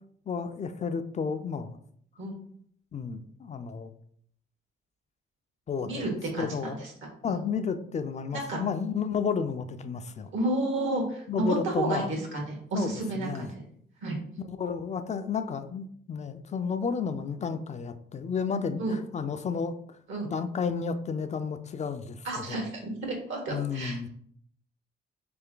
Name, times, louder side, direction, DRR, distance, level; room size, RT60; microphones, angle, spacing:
voice 1, 0.3-1.8 2.9-3.9 5.7-6.1 6.4-6.8 7.2-10.3 11.3-12.1 12.7-13.5 14.4-19.7 20.3-22.6 23.5-24.1, left 6 dB, 35° left, 9 dB, 0.4 m, -32 dB
voice 2, 5.8-6.9 7.3-7.4 8.3-8.6 10.3-13.6 14.0-14.2 18.8-18.9 20.1-20.3 22.2-24.1, right 2 dB, 80° right, 0 dB, 1.6 m, -31 dB
3.8 x 3.4 x 3.7 m, 0.65 s
cardioid pair, 90°, 20 cm